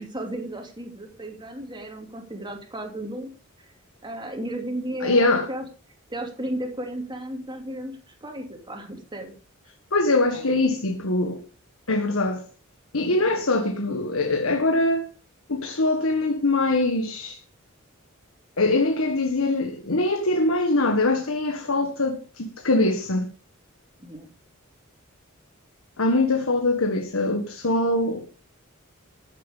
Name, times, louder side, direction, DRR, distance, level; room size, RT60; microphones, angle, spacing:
voice 1, 0.0-3.3 4.0-5.6 6.1-9.3 10.3-10.7 24.0-24.3, right 1 dB, 20° right, 2.8 m, -34 dB
voice 2, 5.0-5.5 9.9-11.4 11.9-12.4 12.9-15.1 15.5-17.4 18.6-23.3 26.0-28.2, left 2 dB, 75° left, 1.5 m, -23 dB
14.0 x 7.7 x 5.4 m
head